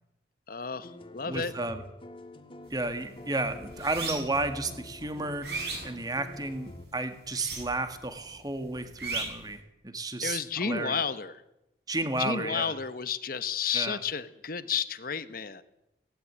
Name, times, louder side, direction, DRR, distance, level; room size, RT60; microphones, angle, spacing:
voice 1, 0.5-1.5 10.2-11.4 12.2-15.6, left 6 dB, 50° left, 13 dB, 1.1 m, -32 dB
sound 1, 0.7-6.8, left 1 dB, 30° left, 1.7 m, -47 dB
voice 2, 1.2-1.8 2.7-5.5 5.8-11.0 11.9-12.7 13.7-14.0, right 2 dB, 20° right, 9 dB, 1.9 m, -32 dB
sound 2, 2.7-2.9 3.3-4.4 4.9-6.6 7.2-8.0 8.3-9.5, right 4 dB, 65° right, 7.5 m, -36 dB
18.5 x 16.0 x 9.9 m, 0.88 s
head